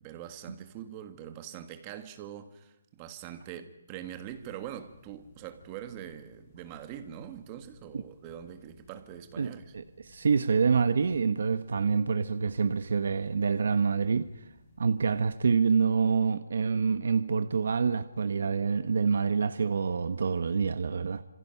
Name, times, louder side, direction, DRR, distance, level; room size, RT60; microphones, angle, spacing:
voice 1, 0.0-9.7, right 10 dB, 15° right, 1.5 m, -43 dB
sound 1, 3.9-15.4, left 2 dB, 10° left, 7.3 m, -59 dB
voice 2, 9.4-14.3 14.8-21.2, right 5 dB, 55° right, 1.2 m, -27 dB
30.0 x 27.0 x 5.8 m
hypercardioid pair, 180°, 0 cm